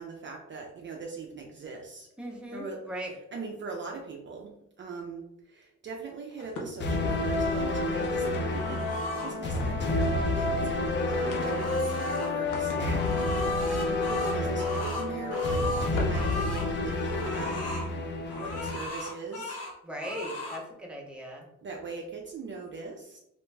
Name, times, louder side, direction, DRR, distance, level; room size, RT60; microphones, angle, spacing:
voice 1, 0.0-2.1 2.5-13.2 13.5-17.7 18.3-19.6 21.6-23.2, right 4 dB, 40° right, 1 dB, 0.4 m, -41 dB
voice 2, 2.2-3.1 12.5-13.7 19.8-21.5, equal, 5° right, -1 dB, 0.7 m, -41 dB
sound 1, 6.3-8.8 9.4-10.4 10.6-10.7 11.0-17.2, left 2 dB, 85° left, 0.7 m, -44 dB
sound 2, 6.8-18.8, left 2 dB, 40° left, 0.4 m, -29 dB
sound 3, 8.5-9.3 10.7-12.3 12.8-16.7 17.0-17.9 18.3-19.7 20.0-20.6, left 2 dB, 55° left, 1.0 m, -37 dB
2.5 x 2.1 x 3.2 m, 0.81 s
cardioid pair, 90°, 30 cm